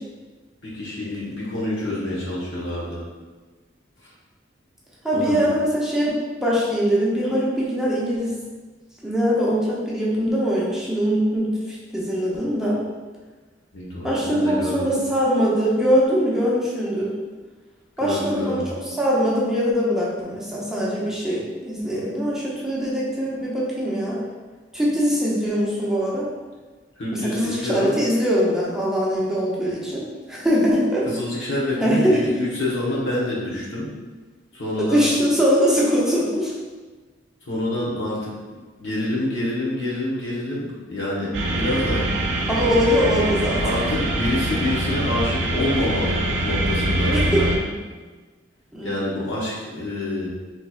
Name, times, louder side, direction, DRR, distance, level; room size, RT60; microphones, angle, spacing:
voice 1, 0.6-3.0 4.0-4.1 5.1-5.3 13.7-15.0 18.0-18.6 27.0-27.9 31.1-33.9 34.5-35.1 37.4-38.3 38.8-42.1 43.6-47.6 48.8-50.3, left 1 dB, 85° left, -6 dB, 1.1 m, -27 dB
voice 2, 5.0-8.4 9.0-12.8 14.0-17.1 18.0-18.6 19.0-24.2 24.7-26.3 27.2-30.0 30.3-31.1 31.8-32.3 34.8-36.5 42.5-43.8 47.1-47.4 48.7-48.9, equal, 5° right, -6 dB, 0.6 m, -22 dB
sound 1, 41.3-47.6, right 1 dB, 75° right, 0.5 m, -24 dB
4.1 x 3.1 x 2.4 m, 1.3 s
head